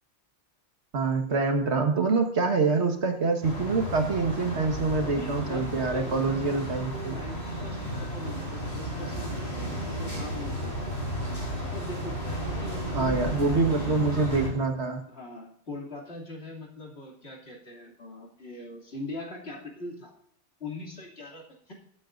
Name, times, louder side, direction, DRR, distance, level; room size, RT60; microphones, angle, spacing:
voice 1, 0.9-7.2 12.6-12.7 12.9-15.0, right 4 dB, 65° right, 5 dB, 1.8 m, -26 dB
sound 1, 3.4-14.5, equal, 40° left, 4.6 m, -33 dB
voice 2, 5.0-10.9 11.6-14.0 15.1-20.1 20.6-21.7, left 1 dB, 60° left, -1 dB, 3.0 m, -41 dB
21.5 x 8.4 x 2.6 m, 0.69 s
omnidirectional pair, 1.2 m